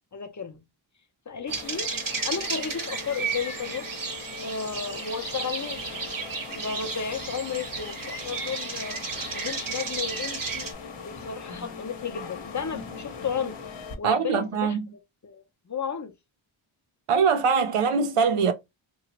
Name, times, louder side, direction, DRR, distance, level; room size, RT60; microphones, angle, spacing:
voice 1, 0.1-0.6 1.3-1.9 2.2-3.9 4.4-5.9 6.5-9.0 9.3-10.7 11.0-13.6 14.0-14.8 15.2-16.1, left 6 dB, 35° left, 0.6 m, -33 dB
sound 1, 1.5-13.9, left 5 dB, 55° left, 1.0 m, -41 dB
sound 2, 1.5-10.7, right 4 dB, 40° right, 0.9 m, -33 dB
voice 2, 14.0-14.9 17.1-18.5, right 5 dB, 90° right, 0.7 m, -22 dB
2.8 x 2.3 x 2.9 m
cardioid pair, 50°, 50 cm